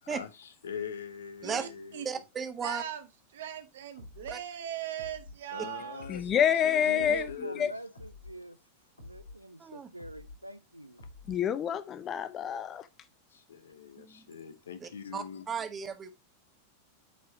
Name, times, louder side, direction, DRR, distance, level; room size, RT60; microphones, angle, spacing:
voice 1, 0.0-2.2 5.5-7.7 8.4-8.5 9.0-9.4 13.3-15.5, left 7 dB, 65° left, 1.0 m, -43 dB
voice 2, 1.4-2.1 2.6-6.1, right 10 dB, 60° right, 1.1 m, -39 dB
voice 3, 2.0-2.8 9.6-9.9 14.0-14.3 14.8-16.1, right 6 dB, 20° right, 1.0 m, -36 dB
sound 1, 4.0-4.4 5.0-5.4 6.0-6.4 7.0-7.4 7.9-8.4 9.0-9.4 10.0-10.4 11.0-11.4, left 2 dB, 80° left, 2.2 m, -48 dB
voice 4, 6.1-7.2 7.6-7.7 11.3-12.9, left 9 dB, 30° left, 0.5 m, -27 dB
voice 5, 6.8-8.6 9.0-11.0, right 1 dB, 90° right, 0.6 m, -42 dB
8.9 x 4.7 x 2.9 m
figure-of-eight pair, 90°, 0 cm